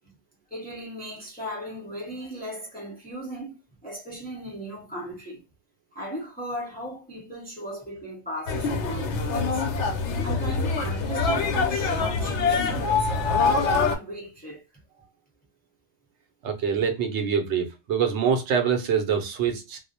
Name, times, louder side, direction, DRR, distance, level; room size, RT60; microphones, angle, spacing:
voice 1, 0.5-5.4 5.9-9.6 10.2-13.1 13.5-14.7, equal, 10° left, 0.6 m, -37 dB
sound 1, 8.5-14.0, left 4 dB, 85° left, 0.9 m, -24 dB
voice 2, 16.4-19.8, right 7 dB, 80° right, 0.9 m, -25 dB
2.3 x 2.0 x 2.7 m
omnidirectional pair, 1.2 m